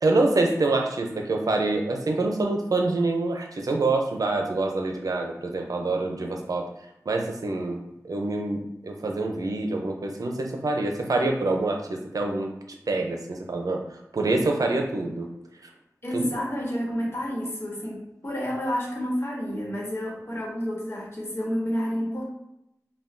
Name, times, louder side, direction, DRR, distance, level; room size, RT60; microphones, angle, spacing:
voice 1, 0.0-6.7 7.1-12.5 12.9-13.8 14.1-15.3 16.1-16.3, right 2 dB, 80° right, 3 dB, 0.5 m, -26 dB
voice 2, 16.0-22.3, equal, 45° left, -3 dB, 1.2 m, -30 dB
5.6 x 2.3 x 2.6 m, 0.83 s
wide cardioid pair, 60°, 6 cm